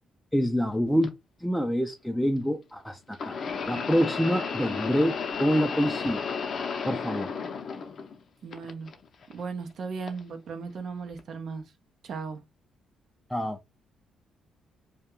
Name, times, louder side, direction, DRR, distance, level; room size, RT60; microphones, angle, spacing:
voice 1, 0.3-1.1 1.4-6.2 6.8-7.3 13.3-13.6, equal, ahead, 0.4 m, -26 dB
sound 1, 1.0-1.1 3.1-8.2 8.5-9.3 10.1-10.2 11.2-11.3, left 5 dB, 50° left, 0.6 m, -33 dB
voice 2, 8.4-8.9 9.3-11.7 12.0-12.4, right 5 dB, 60° right, 0.6 m, -36 dB
2.3 x 2.2 x 2.9 m
cardioid pair, 90°, 0 cm